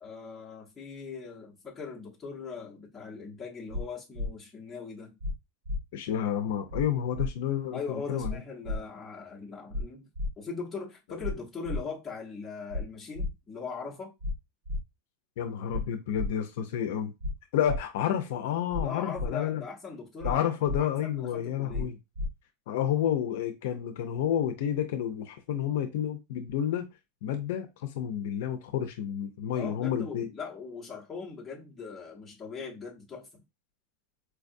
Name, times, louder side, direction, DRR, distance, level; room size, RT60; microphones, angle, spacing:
voice 1, 0.0-5.2 7.7-10.1 10.4-14.1 17.6-17.8 18.8-20.4 20.7-21.9 29.5-33.4, left 5 dB, 10° left, 0.9 m, -40 dB
sound 1, 3.7-3.8 4.2-4.3 5.2-5.3 5.7-5.8 6.7-6.8 7.2-7.3 8.2-8.3 8.7-8.8 9.7-9.8 10.2-10.3 11.2-11.3 11.7-11.8 12.7-12.8 13.2-13.3 14.2-14.3 14.7-14.8 15.7-15.8 16.2-16.3 17.2-17.3 17.7-17.8 18.7-18.8 19.2-19.3 20.2-20.3 20.7-20.8 21.7-21.8 22.2-22.3, left 2 dB, 60° right, 0.9 m, -31 dB
voice 2, 5.9-8.4 15.4-17.1 17.5-19.6 20.2-22.0 22.7-26.9 27.2-30.3, left 9 dB, 60° left, 0.5 m, -30 dB
4.5 x 2.4 x 2.5 m
supercardioid pair, 175°, 0 cm